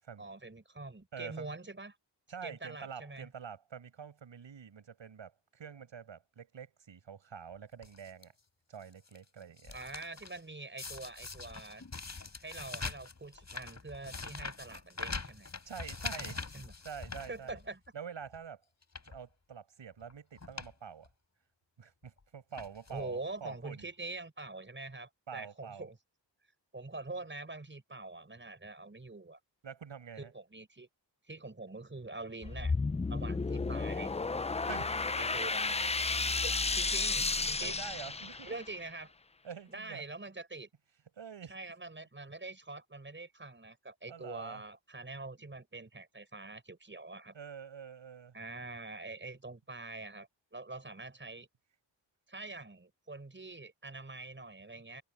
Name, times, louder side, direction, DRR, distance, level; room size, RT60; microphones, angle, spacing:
voice 1, 0.2-2.0 2.4-3.3 9.7-11.8 12.4-15.5 16.1-16.7 17.3-17.8 22.9-26.0 26.7-29.4 30.2-30.9 31.3-32.7 33.1-34.6 35.2-36.0 36.4-37.8 38.4-39.1 39.7-40.7 41.5-47.4 48.3-51.5 52.3-55.0, right 3 dB, 25° right, 6.4 m, -45 dB
voice 2, 1.1-1.6 2.3-8.3 8.7-9.8 15.6-16.4 16.8-17.6 17.9-18.6 19.0-21.1 21.8-23.9 25.3-25.9 29.6-30.3 34.6-34.9 37.6-38.6 39.4-40.0 41.2-41.6 44.1-44.6 47.3-48.3, right 7 dB, 80° right, 7.9 m, -46 dB
sound 1, 7.8-8.2 8.8-10.4 10.8-17.9 18.3-18.4 18.8-19.2 20.0-20.1 20.4-20.7 21.0-21.1 22.0-22.2 22.6-23.1 23.8-23.9 24.1-24.2, left 4 dB, 35° left, 4.4 m, -43 dB
sound 2, 32.4-38.7, left 3 dB, 15° left, 0.4 m, -32 dB
wide cardioid pair, 115°, 44 cm